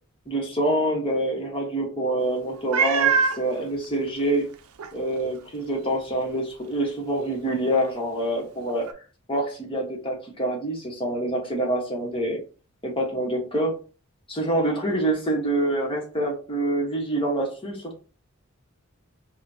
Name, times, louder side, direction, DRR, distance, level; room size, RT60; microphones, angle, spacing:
voice 1, 0.3-4.5 4.9-8.9 9.3-12.4 12.8-13.8 14.3-18.0, right 1 dB, 25° left, -1 dB, 1.1 m, -26 dB
Meow, 2.7-3.4 4.2-4.3 4.8-4.9 8.9-9.0, right 6 dB, 85° right, 0.5 m, -22 dB
4.8 x 2.2 x 2.7 m, 0.36 s
head